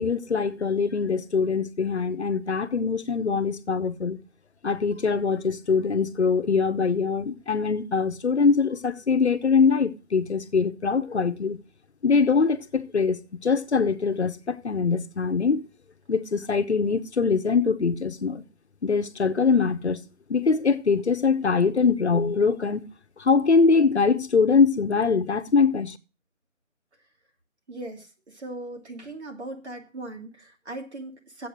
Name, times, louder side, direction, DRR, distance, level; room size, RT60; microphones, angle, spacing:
voice 1, 0.0-4.2 4.6-11.6 12.0-15.7 16.1-18.4 18.8-20.0 20.3-22.8 23.2-26.0, left 5 dB, 60° left, 0.9 m, -23 dB
voice 2, 27.7-31.5, right 2 dB, 60° right, 2.1 m, -39 dB
7.7 x 6.7 x 7.4 m
figure-of-eight pair, 170°, 38 cm